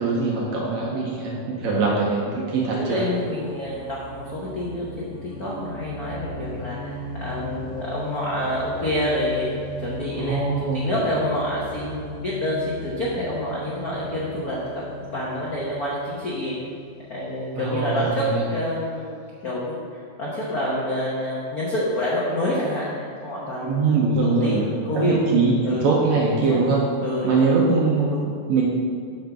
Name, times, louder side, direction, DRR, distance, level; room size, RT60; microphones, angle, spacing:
voice 1, 0.0-3.1 10.1-10.9 17.6-18.4 23.6-24.7 25.0-26.8 27.2-28.1 28.5-28.7, right 4 dB, 75° right, -3 dB, 2.0 m, -22 dB
voice 2, 2.8-16.5 17.1-19.2 19.4-23.8 24.2-25.2 25.6-25.8 26.5-26.6 27.0-28.3, left 1 dB, 85° left, -6 dB, 0.8 m, -27 dB
sound 1, 3.0-19.4, equal, 25° right, 2.4 m, -38 dB
7.8 x 5.3 x 5.9 m, 2.3 s
omnidirectional pair, 3.5 m